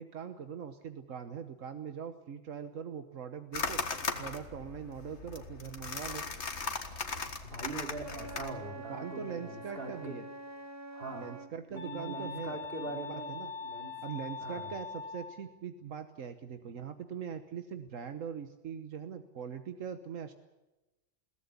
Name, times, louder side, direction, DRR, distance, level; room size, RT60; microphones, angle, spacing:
voice 1, 0.0-3.8 4.2-6.2 8.9-10.2 11.1-12.6 13.3-13.5 14.0-20.3, right 7 dB, 80° right, 8 dB, 1.5 m, -41 dB
sound 1, 3.5-8.5, left 4 dB, 60° left, 2.0 m, -38 dB
voice 2, 7.4-10.2 10.9-11.3 11.7-13.3 13.6-14.0 14.4-14.7, right 3 dB, 45° right, 3 dB, 3.2 m, -42 dB
Wind instrument woodwind instrument, 8.0-11.6, right 2 dB, 15° right, 1.4 m, -46 dB
sound 2, 11.8-15.4, left 5 dB, 45° left, 3.2 m, -42 dB
22.0 x 17.0 x 8.3 m, 1.1 s
omnidirectional pair, 1.3 m